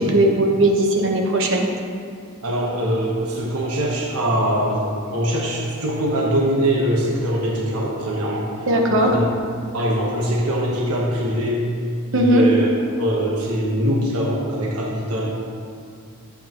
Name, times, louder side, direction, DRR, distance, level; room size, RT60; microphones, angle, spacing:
voice 1, 0.0-1.7 8.7-9.1 12.1-12.4, right 1 dB, 60° right, 1 dB, 1.2 m, -18 dB
voice 2, 2.4-8.5 8.9-9.3 9.7-11.7 12.1-12.7 13.0-15.3, equal, 85° right, -3 dB, 1.3 m, -22 dB
11.5 x 7.9 x 3.1 m, 2.2 s
head